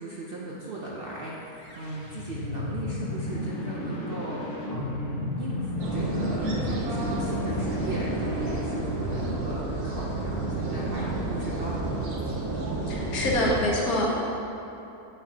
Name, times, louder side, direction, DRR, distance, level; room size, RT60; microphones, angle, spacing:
voice 1, 0.0-11.9 12.2-12.5, right 1 dB, 55° right, -5 dB, 0.6 m, -38 dB
sound 1, 1.5-9.6, left 1 dB, 55° left, 1.0 m, -33 dB
sound 2, 5.8-13.7, right 2 dB, 80° right, 1.4 m, -30 dB
voice 2, 12.9-14.2, left 1 dB, 70° left, -3 dB, 1.5 m, -25 dB
8.0 x 5.7 x 2.8 m, 2.9 s
omnidirectional pair, 1.6 m